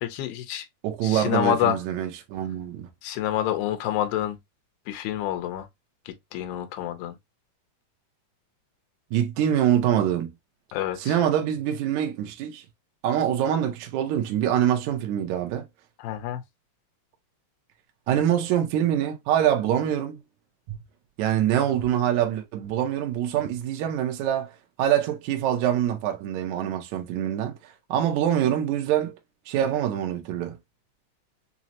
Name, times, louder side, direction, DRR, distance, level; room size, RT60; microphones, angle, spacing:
voice 1, 0.0-0.7 1.0-1.8 3.0-4.4 4.9-5.7 6.1-7.1 10.7-11.2 16.0-16.4, left 11 dB, 85° left, 2.6 m, -27 dB
voice 2, 0.8-2.9 9.1-10.3 11.0-12.6 13.0-15.7 18.1-20.2 20.7-20.8 21.2-24.5 24.8-29.1 29.5-30.6, right 10 dB, 75° right, 1.8 m, -25 dB
6.1 x 2.1 x 2.8 m
omnidirectional pair, 4.2 m